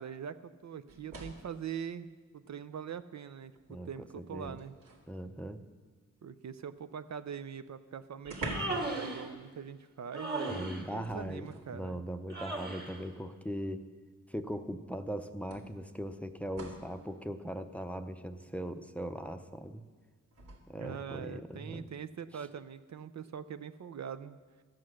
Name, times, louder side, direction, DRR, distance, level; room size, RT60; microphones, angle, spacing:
voice 1, 0.0-4.7 6.2-12.0 20.7-24.4, right 7 dB, 60° right, 11 dB, 0.5 m, -43 dB
sound 1, 0.9-1.6 3.0-3.1 3.5-5.1 7.2-7.3 7.6-7.7 8.2-9.0 9.2-9.5 11.0-11.7 12.9-13.0 14.5-14.6 15.5-17.0 20.3-20.6, right 2 dB, 90° right, 2.1 m, -45 dB
voice 2, 3.7-4.6 5.1-5.6 10.5-13.8 14.3-19.8 20.7-21.9 22.3-22.5, equal, 5° left, 8 dB, 0.6 m, -40 dB
Human voice, 8.3-9.3 10.1-10.9 12.3-13.0, right 2 dB, 30° right, 1.9 m, -37 dB
13.0 x 7.7 x 6.3 m, 1.5 s
cardioid pair, 70°, 32 cm